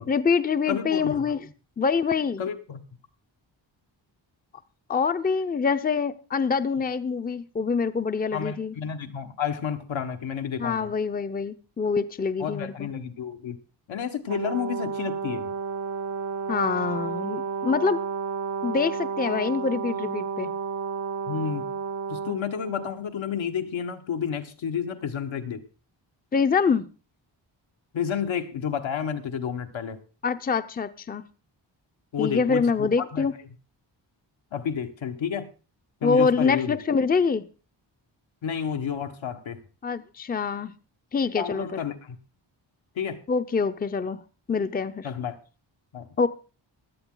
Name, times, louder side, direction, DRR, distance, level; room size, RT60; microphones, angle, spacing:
voice 1, 0.1-1.4 1.8-2.4 4.9-8.8 10.6-12.9 16.5-18.0 18.6-20.5 26.3-26.9 30.2-31.2 32.2-33.3 36.0-37.4 39.8-40.7 41.1-41.7 43.3-44.2 44.5-45.1 46.2-46.3, left 5 dB, 20° left, 11 dB, 0.6 m, -25 dB
voice 2, 0.7-1.3 2.4-2.8 8.3-10.9 12.4-13.6 13.9-15.5 21.3-21.7 22.1-25.6 27.9-30.0 32.1-33.3 34.5-35.5 36.0-36.8 38.4-39.6 41.4-42.2 42.9-43.2 45.0-45.4 45.9-46.1, left 7 dB, 80° left, 5 dB, 1.5 m, -30 dB
Brass instrument, 14.3-23.0, right 5 dB, 40° right, 0.7 m, -32 dB
16.5 x 11.0 x 3.8 m, 0.34 s
wide cardioid pair, 110°, 46 cm